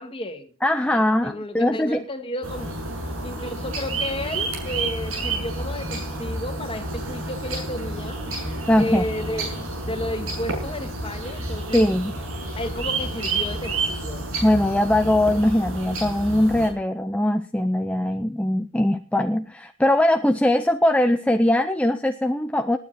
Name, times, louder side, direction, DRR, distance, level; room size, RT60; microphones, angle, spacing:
voice 1, 0.0-0.5 0.9-2.7 3.2-8.2 8.8-9.5 9.9-11.8 12.6-14.3, left 1 dB, 25° left, 2.0 m, -32 dB
voice 2, 0.6-2.0 8.7-9.0 11.7-12.1 14.4-22.8, left 1 dB, 5° left, 0.6 m, -21 dB
sound 1, 2.4-16.7, right 2 dB, 70° right, 6.9 m, -30 dB
19.5 x 9.7 x 4.2 m
head